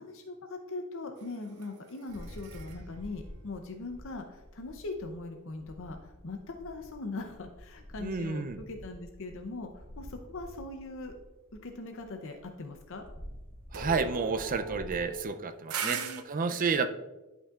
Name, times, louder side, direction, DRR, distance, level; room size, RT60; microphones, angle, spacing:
voice 1, 0.0-11.1 11.6-13.0 15.8-16.2, left 3 dB, 65° left, 5 dB, 0.7 m, -41 dB
sound 1, 1.2-4.6 13.7-16.2, right 6 dB, 85° right, 0.7 m, -41 dB
sound 2, 2.1-5.2 5.5-15.0, equal, 25° right, 1.8 m, -48 dB
voice 2, 8.0-8.6 13.7-16.0 16.3-17.0, right 4 dB, 40° right, 9 dB, 0.5 m, -30 dB
11.5 x 5.5 x 2.4 m, 1.1 s
head